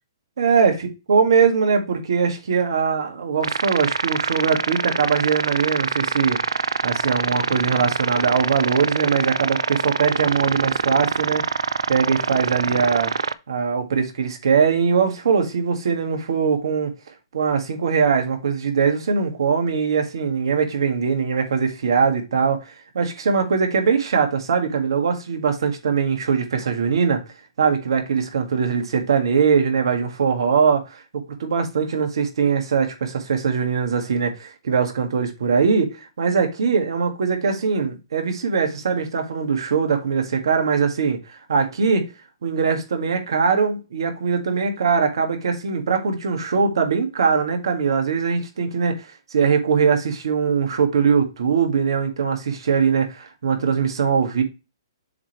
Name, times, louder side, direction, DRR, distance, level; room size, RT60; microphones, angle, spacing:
voice 1, 0.4-0.8 1.1-6.4 6.8-11.4 11.9-13.1 13.5-16.9 17.3-22.6 22.9-27.2 27.6-42.1 42.4-54.4, right 6 dB, 70° right, 1.8 m, -21 dB
sound 1, 3.4-13.3, right 5 dB, 90° right, 0.4 m, -24 dB
7.1 x 3.3 x 4.5 m
hypercardioid pair, 140°, 3 cm